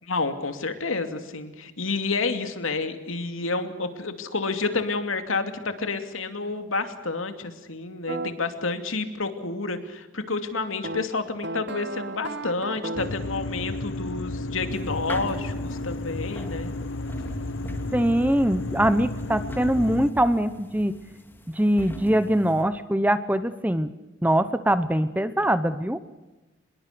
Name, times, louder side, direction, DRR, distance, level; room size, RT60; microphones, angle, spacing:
voice 1, 0.0-16.7, left 3 dB, 85° left, 7 dB, 2.7 m, -29 dB
sound 1, 8.1-8.3 10.8-13.3, right 2 dB, 55° right, 1.1 m, -34 dB
sound 2, 13.0-20.1, left 2 dB, 70° left, 1.0 m, -32 dB
sound 3, 14.7-22.6, equal, 10° left, 2.1 m, -41 dB
voice 2, 17.9-20.9 21.5-23.9 24.2-26.0, right 1 dB, 10° right, 12 dB, 0.8 m, -23 dB
25.5 x 21.5 x 6.8 m, 1.1 s
head